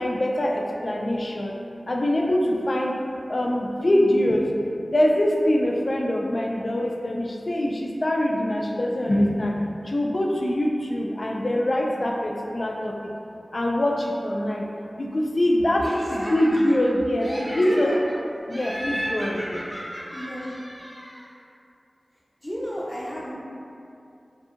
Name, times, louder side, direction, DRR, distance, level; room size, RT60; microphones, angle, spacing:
voice 1, 0.0-1.5 1.9-3.0 3.3-4.5 4.9-9.6 9.8-12.9 13.5-14.7 15.0-17.9 18.5-19.7, left 1 dB, 55° left, 0 dB, 0.3 m, -23 dB
voice 2, 15.8-16.8 17.5-18.0 20.1-20.5 22.4-23.3, equal, 20° left, -7 dB, 0.7 m, -32 dB
Laughter, 15.8-16.9 17.2-18.1 18.5-21.3, equal, 20° right, 0.6 m, -35 dB
2.6 x 2.5 x 2.4 m, 2.6 s
wide cardioid pair, 50°, 0 cm